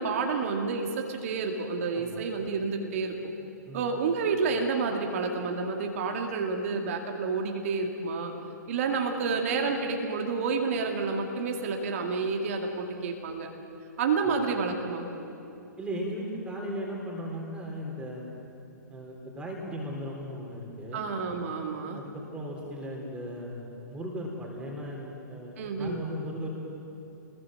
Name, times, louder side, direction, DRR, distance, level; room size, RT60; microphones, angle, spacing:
voice 1, 0.0-3.1 3.7-8.3 8.7-13.5 14.0-15.1 20.9-22.0 25.6-26.0, right 4 dB, 45° right, 2 dB, 2.2 m, -29 dB
voice 2, 15.8-18.3 18.9-21.0 21.9-26.6, equal, 10° right, -2 dB, 3.9 m, -37 dB
28.0 x 21.5 x 7.8 m, 2.9 s
figure-of-eight pair, 115°, 10 cm